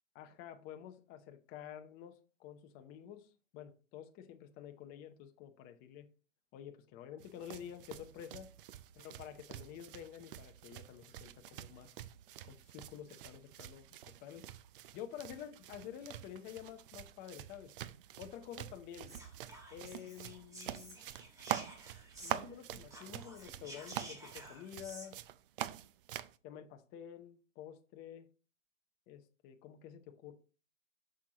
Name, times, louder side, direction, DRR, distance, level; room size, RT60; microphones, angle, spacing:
voice 1, 0.1-6.1 6.5-8.5 8.9-11.9 12.4-14.4 14.9-17.7 18.2-19.1 19.7-21.0 22.2-25.1 26.4-28.3 29.1-30.3, left 10 dB, 25° left, 0.7 m, -50 dB
sound 1, 7.2-26.4, right 12 dB, 45° right, 0.5 m, -46 dB
Whispering, 19.0-22.6 22.9-25.1, right 1 dB, 10° right, 1.3 m, -52 dB
8.2 x 6.4 x 2.9 m
hypercardioid pair, 140°, 38 cm